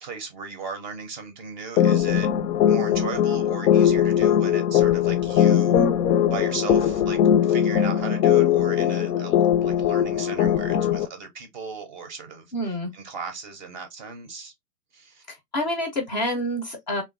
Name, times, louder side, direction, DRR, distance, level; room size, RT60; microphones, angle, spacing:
voice 1, 0.0-2.3 2.7-5.9 6.3-14.5 14.9-15.2, right 5 dB, 30° right, 0.4 m, -37 dB
sound 1, 1.8-11.1, left 9 dB, 80° left, 0.5 m, -20 dB
voice 2, 12.5-12.9 15.3-17.0, left 1 dB, 30° left, 0.4 m, -28 dB
3.0 x 2.2 x 2.3 m
hypercardioid pair, 125°, 48 cm